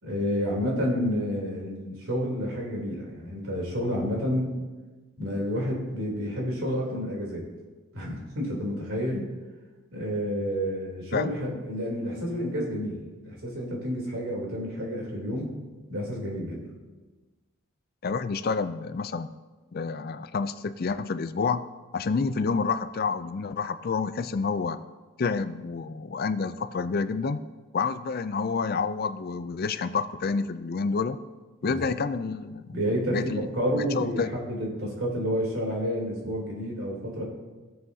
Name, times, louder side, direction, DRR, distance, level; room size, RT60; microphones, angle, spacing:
voice 1, 0.0-4.5 5.2-7.5 7.9-9.3 9.9-15.5 15.9-16.7 31.6-31.8 32.7-34.2 34.5-37.2, equal, 70° right, -2 dB, 3.3 m, -30 dB
voice 2, 18.0-19.3 19.7-21.6 21.9-24.8 25.2-27.4 27.7-31.2 31.6-32.7 33.1-33.5 33.8-34.3, left 4 dB, 45° left, 12 dB, 0.4 m, -28 dB
16.5 x 7.7 x 2.8 m, 1.2 s
head